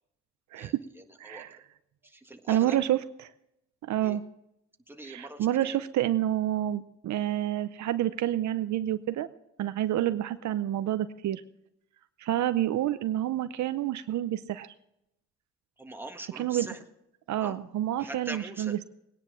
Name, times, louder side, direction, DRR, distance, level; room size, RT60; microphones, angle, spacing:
voice 1, 0.6-1.4 2.0-2.8 4.0-4.2 4.9-5.8 15.8-16.8 17.4-17.6 18.0-18.8, right 2 dB, 5° right, 4 dB, 1.7 m, -42 dB
voice 2, 1.2-1.6 2.5-3.0 3.8-4.2 5.0-9.3 9.6-11.4 12.2-14.7 16.4-16.7 17.3-18.9, right 13 dB, 70° right, 12 dB, 0.7 m, -28 dB
19.5 x 10.0 x 6.2 m, 0.85 s
cardioid pair, 90°, 30 cm